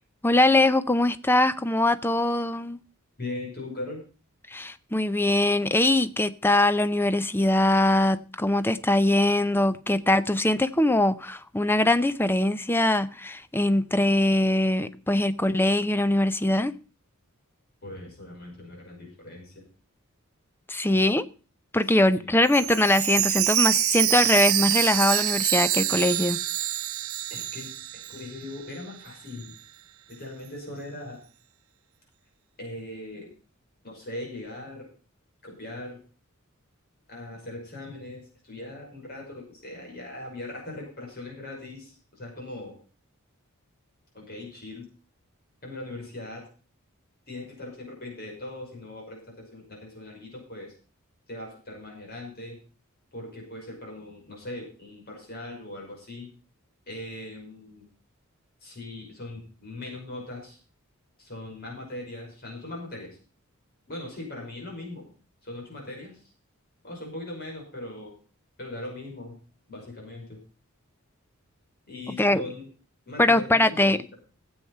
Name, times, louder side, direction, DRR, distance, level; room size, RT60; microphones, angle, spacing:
voice 1, 0.2-2.8 4.5-16.7 20.7-21.3 21.7-26.4 72.2-72.4 73.2-74.0, left 1 dB, 10° left, 0.6 m, -22 dB
voice 2, 3.2-4.0 17.8-19.6 21.9-22.3 27.3-29.5 30.1-31.2 32.6-33.3 33.8-34.9 35.4-36.0 37.1-42.8 44.1-44.9 45.6-46.5 47.3-49.2 49.5-50.7 51.3-52.6 53.1-56.3 56.9-57.9 58.6-60.6 61.2-63.2 63.9-65.1 65.4-66.2 66.8-68.2 68.6-69.3 69.7-70.4 71.9-72.7 73.1-74.1, left 2 dB, 45° left, 5.9 m, -40 dB
Chime, 22.5-28.4 28.7-28.8 29.4-29.5, right 13 dB, 70° right, 0.8 m, -26 dB
16.0 x 8.1 x 5.5 m
head